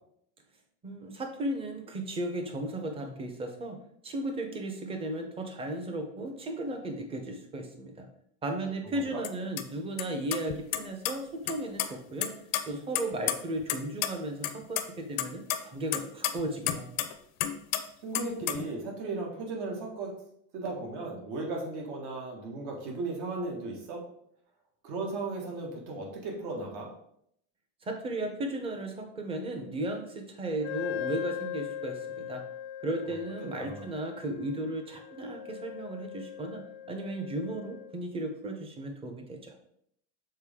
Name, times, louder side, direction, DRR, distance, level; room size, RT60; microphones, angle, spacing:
voice 1, 0.8-3.8 4.0-8.1 8.4-12.3 12.7-16.9 27.8-32.4 32.8-36.6 36.9-39.5, right 1 dB, 15° right, 4 dB, 0.7 m, -35 dB
sound 1, 9.2-9.3 9.6-9.7 10.0-10.1 10.3-11.1 11.5-11.9 12.2-13.8 14.0-14.1 14.4-14.8 15.2-17.1 17.4-17.8 18.1-18.7, left 12 dB, 45° left, 0.6 m, -30 dB
voice 2, 18.0-20.1 20.5-24.0 24.8-26.9 33.6-33.9, right 3 dB, 60° right, 0 dB, 1.7 m, -36 dB
Wind instrument woodwind instrument, 30.6-38.0, left 11 dB, 85° left, 0.7 m, -40 dB
6.5 x 4.1 x 3.6 m, 0.70 s
cardioid pair, 160°, 36 cm